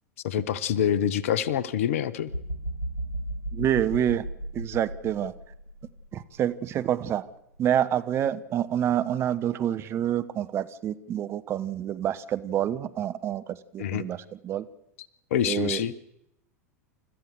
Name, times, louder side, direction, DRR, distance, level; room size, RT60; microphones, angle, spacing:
voice 1, 0.2-2.3 13.8-14.1 15.3-15.9, left 9 dB, 55° left, 20 dB, 1.0 m, -26 dB
sound 1, 2.3-6.3 6.8-7.0, right 1 dB, 80° left, 2.4 m, -35 dB
voice 2, 3.5-4.2 4.5-5.3 6.1-7.2 7.6-14.6 15.4-15.8, right 10 dB, 30° right, 12 dB, 1.0 m, -27 dB
29.5 x 14.0 x 6.8 m, 0.81 s
figure-of-eight pair, 85°, 9 cm